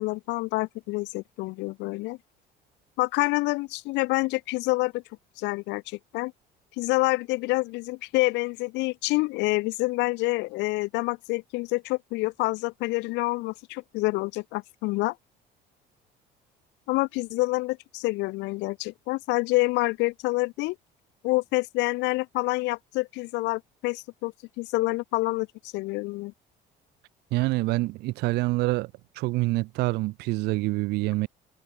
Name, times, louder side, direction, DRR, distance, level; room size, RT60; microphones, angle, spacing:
voice 1, 0.0-2.2 3.0-5.0 5.4-6.3 6.8-15.1 16.9-20.7 21.2-25.5 25.7-26.3, left 22 dB, 90° left, 1.6 m, -27 dB
voice 2, 27.3-28.9 29.2-31.3, right 21 dB, 70° right, 0.5 m, -26 dB
cardioid pair, 160°, 18 cm